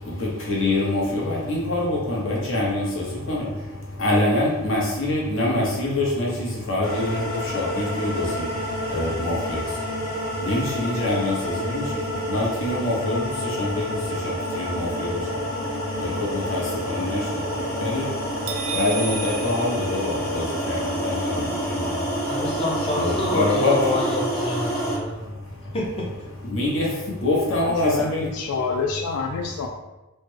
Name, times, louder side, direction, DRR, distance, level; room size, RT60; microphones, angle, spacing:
voice 1, 0.0-22.6 23.0-23.7 25.1-25.8 26.5-28.3, left 2 dB, 60° left, -4 dB, 0.9 m, -26 dB
sound 1, 6.8-25.0, equal, 45° left, 1.2 m, -29 dB
sound 2, 18.5-20.6, right 6 dB, 65° right, 0.4 m, -33 dB
voice 2, 22.2-25.3 25.7-26.1, left 1 dB, 25° left, -4 dB, 0.5 m, -27 dB
voice 3, 27.6-29.7, left 4 dB, 85° left, 2 dB, 0.3 m, -28 dB
3.2 x 2.1 x 3.2 m, 1.0 s
head